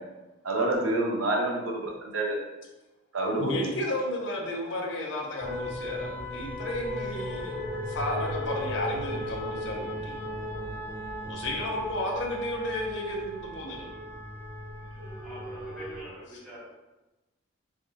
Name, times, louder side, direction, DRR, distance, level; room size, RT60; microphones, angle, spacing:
voice 1, 0.4-2.4 3.1-3.6, right 2 dB, 90° right, 0 dB, 0.7 m, -27 dB
voice 2, 3.4-7.6 7.9-10.2 11.2-13.9, left 1 dB, 60° left, 0 dB, 0.6 m, -33 dB
sound 1, 5.4-16.0, equal, 80° left, 1.3 m, -36 dB
voice 3, 15.0-16.6, equal, 5° left, -10 dB, 1.3 m, -45 dB
3.5 x 3.5 x 2.6 m, 1.1 s
head